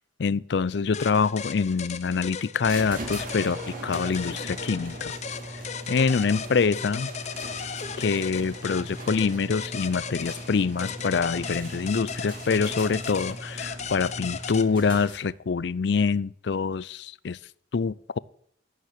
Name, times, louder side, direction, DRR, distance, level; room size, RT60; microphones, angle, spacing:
voice 1, 0.2-5.1 5.9-7.1 8.0-17.4 17.7-18.2, left 5 dB, 60° left, 0.4 m, -25 dB
sound 1, 0.9-14.6, left 6 dB, 35° left, 0.8 m, -37 dB
sound 2, 2.6-15.4, right 1 dB, 45° right, 3.3 m, -39 dB
11.5 x 9.1 x 9.6 m
head